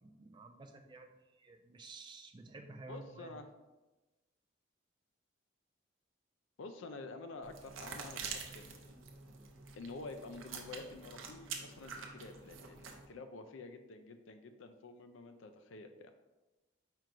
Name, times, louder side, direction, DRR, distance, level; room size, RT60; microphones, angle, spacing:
voice 1, 0.0-3.4, right 3 dB, 25° right, 4 dB, 0.3 m, -52 dB
voice 2, 2.8-3.5 6.6-8.9 9.7-16.1, left 3 dB, 75° left, 7 dB, 0.4 m, -49 dB
sound 1, 7.4-13.1, right 5 dB, 80° right, 0.6 m, -47 dB
4.5 x 4.5 x 2.5 m, 1.1 s
head